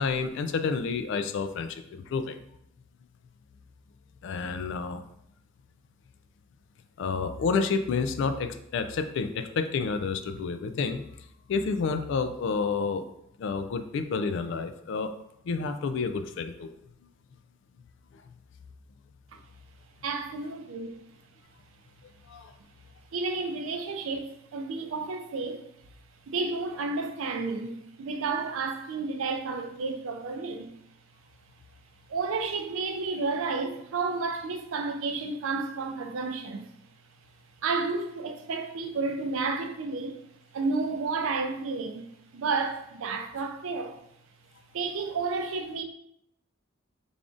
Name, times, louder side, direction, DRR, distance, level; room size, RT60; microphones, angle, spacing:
voice 1, 0.0-2.4 4.2-5.0 7.0-11.0 11.5-13.0 13.4-15.1 15.4-16.7 22.3-22.5, left 5 dB, 65° left, 0.3 m, -29 dB
voice 2, 20.0-20.9 23.1-25.6 26.3-30.7 32.1-36.7 37.6-40.2 40.5-42.1 42.3-44.0 44.7-45.8, right 4 dB, 85° right, 0.4 m, -31 dB
3.4 x 2.4 x 3.7 m
head